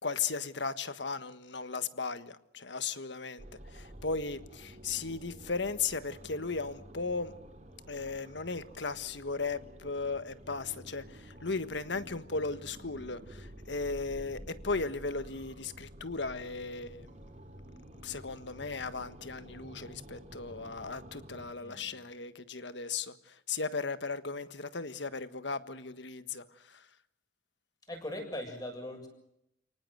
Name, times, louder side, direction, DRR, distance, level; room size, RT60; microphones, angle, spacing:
voice 1, 0.0-3.4 3.7-7.3 7.9-17.1 18.0-26.8, left 4 dB, 70° left, 1.5 m, -36 dB
sound 1, 3.4-21.5, right 1 dB, 40° right, 4.1 m, -50 dB
voice 2, 21.6-21.9 27.9-29.1, left 1 dB, 20° left, 7.5 m, -40 dB
30.0 x 19.0 x 7.9 m
head